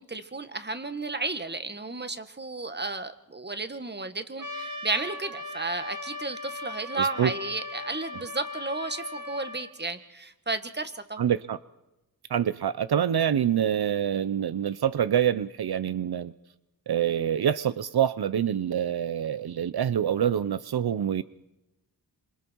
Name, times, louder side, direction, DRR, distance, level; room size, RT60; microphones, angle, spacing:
voice 1, 0.0-11.3, right 3 dB, 25° right, 9 dB, 1.9 m, -33 dB
Trumpet, 4.4-9.7, left 2 dB, 55° right, 3.1 m, -38 dB
voice 2, 7.0-7.3 11.2-11.6 12.3-16.3 16.9-21.2, right 9 dB, 75° right, 14 dB, 0.8 m, -26 dB
27.5 x 26.5 x 4.7 m, 0.92 s
wide cardioid pair, 80°, 38 cm